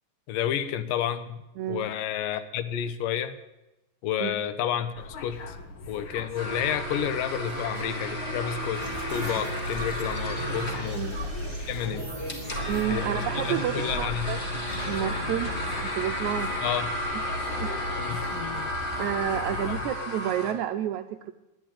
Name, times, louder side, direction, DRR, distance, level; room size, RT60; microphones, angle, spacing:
voice 1, 0.3-1.4 1.7-3.4 4.0-4.9 5.2-5.6 5.9-8.8 9.1-11.0 11.7-12.1 12.9-14.4 16.6-16.9 18.1-18.7 19.7-19.8, left 10 dB, 85° left, 11 dB, 2.5 m, -30 dB
sound 1, 5.0-19.8, left 3 dB, 70° left, 1.2 m, -38 dB
sound 2, 6.3-20.5, equal, 25° left, 1.1 m, -34 dB
sound 3, 8.8-17.0, right 3 dB, 10° right, 1.5 m, -38 dB
voice 2, 12.7-14.4 14.8-16.5 17.1-17.3 17.6-17.7 19.0-21.3, right 11 dB, 80° right, 7 dB, 1.7 m, -30 dB
10.5 x 9.4 x 10.0 m, 0.96 s
omnidirectional pair, 3.9 m